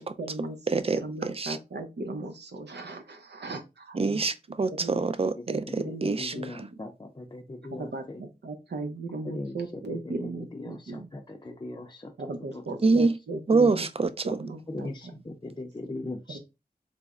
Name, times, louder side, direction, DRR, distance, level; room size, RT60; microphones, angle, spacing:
voice 1, 0.0-0.6 0.9-4.3 4.7-5.0 5.5-6.8 7.7-11.1 12.2-13.9 14.2-15.1 16.3-16.4, right 2 dB, 85° right, 0.7 m, -37 dB
voice 2, 0.7-1.6 4.0-6.6 12.8-13.2 13.5-14.4, right 3 dB, 35° right, 0.4 m, -26 dB
voice 3, 5.7-7.9 9.3-9.6 9.9-12.1 12.5-13.1 14.7-16.4, left 2 dB, 25° left, 0.5 m, -39 dB
3.4 x 2.0 x 3.6 m
wide cardioid pair, 70°, 17 cm